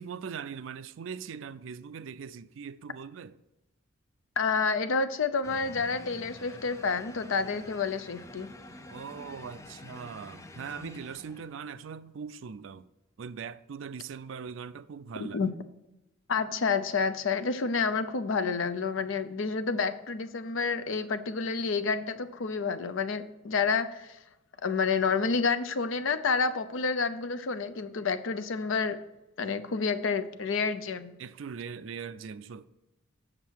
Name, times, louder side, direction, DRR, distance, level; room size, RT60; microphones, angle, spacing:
voice 1, 0.0-3.4 8.9-12.9 13.2-15.4 31.2-32.6, right 6 dB, 65° right, 0.4 m, -41 dB
voice 2, 4.4-8.5 15.2-15.5 16.3-24.2 24.6-29.0 29.4-31.1, left 5 dB, 65° left, 0.6 m, -29 dB
sound 1, 5.4-11.7, left 2 dB, 15° left, 0.4 m, -48 dB
7.4 x 6.6 x 4.5 m
head